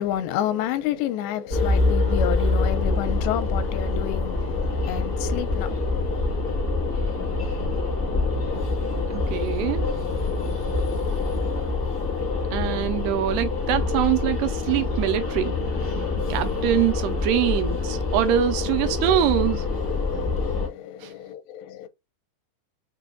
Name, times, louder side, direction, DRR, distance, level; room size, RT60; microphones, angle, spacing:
voice 1, 0.0-6.3 18.9-21.9, left 11 dB, 85° left, 2.9 m, -30 dB
sound 1, 1.5-20.7, left 3 dB, 60° left, 0.8 m, -25 dB
voice 2, 9.1-9.9 12.5-15.5 16.3-19.7 21.0-21.1, right 11 dB, 80° right, 2.6 m, -24 dB
6.8 x 2.3 x 2.5 m
omnidirectional pair, 4.9 m